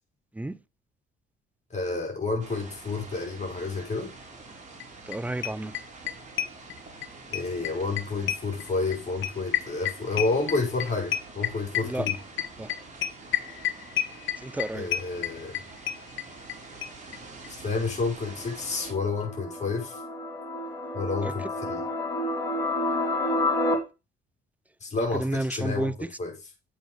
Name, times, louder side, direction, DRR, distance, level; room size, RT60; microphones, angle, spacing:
voice 1, 1.7-4.1 7.3-12.2 14.7-15.6 17.6-20.0 20.9-21.8 24.8-26.3, left 3 dB, 35° left, 4.9 m, -30 dB
sound 1, 2.4-18.9, right 3 dB, 35° right, 3.3 m, -46 dB
sound 2, 4.8-4.9 5.1-5.2 5.4-7.1 7.3-16.6 16.8-16.9 17.1-17.2 17.4-17.5, left 12 dB, 80° left, 1.0 m, -29 dB
voice 2, 5.1-5.7 11.8-12.1 12.6-12.7 14.4-14.9 21.2-21.3 25.0-25.9, right 1 dB, 5° right, 0.5 m, -31 dB
sound 3, 18.2-23.8, left 1 dB, 15° left, 2.9 m, -30 dB
7.7 x 5.3 x 5.3 m
cardioid pair, 90°, 20 cm